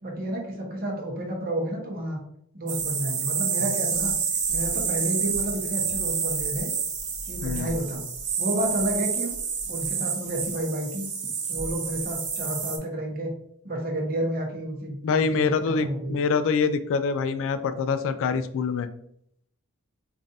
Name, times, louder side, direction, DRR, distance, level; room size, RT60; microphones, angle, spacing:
voice 1, 0.0-2.2 2.5-4.2 4.5-6.7 7.2-8.0 8.4-9.3 9.6-11.1 11.5-13.3 13.6-15.0 15.3-16.2, right 1 dB, 45° right, 0 dB, 1.0 m, -30 dB
sound 1, 2.7-12.8, right 6 dB, 85° right, 1.0 m, -29 dB
voice 2, 7.4-7.7 15.0-18.9, left 5 dB, 60° left, 12 dB, 0.3 m, -25 dB
5.2 x 2.5 x 2.6 m, 0.71 s
head